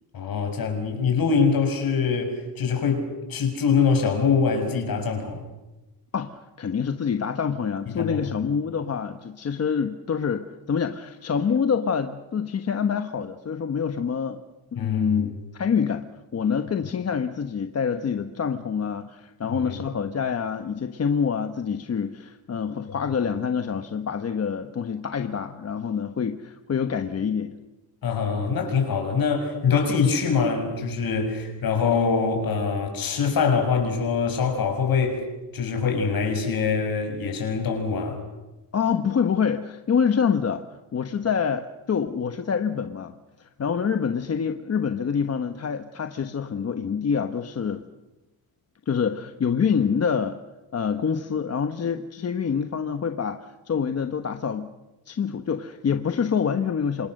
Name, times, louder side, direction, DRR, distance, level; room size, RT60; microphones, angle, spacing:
voice 1, 0.1-5.4 7.9-8.2 14.8-15.3 19.5-19.8 28.0-35.2 35.5-38.2, left 5 dB, 60° left, 4 dB, 6.4 m, -24 dB
voice 2, 6.1-14.4 14.7-16.0 16.3-27.6 38.7-40.6 40.9-47.8 48.9-50.4 50.7-54.7 55.1-57.1, left 6 dB, 40° left, 7 dB, 1.2 m, -26 dB
28.5 x 26.0 x 6.6 m, 1.0 s
wide cardioid pair, 155°, 39 cm